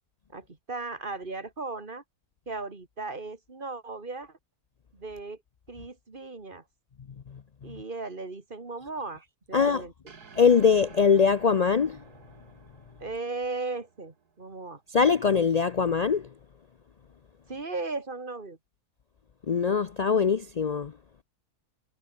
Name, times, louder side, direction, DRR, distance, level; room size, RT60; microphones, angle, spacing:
voice 1, 0.3-2.0 2.5-4.4 4.9-5.4 5.7-6.6 7.6-9.9 13.0-14.8 17.5-18.6, right 3 dB, 35° right, 2.2 m, -36 dB
voice 2, 7.3-7.8 9.5-9.9 10.4-12.0 14.9-16.3 19.5-20.9, left 6 dB, 70° left, 0.3 m, -23 dB
sound 1, 10.1-14.5, right 5 dB, 90° right, 2.7 m, -51 dB
omnidirectional pair, 1.6 m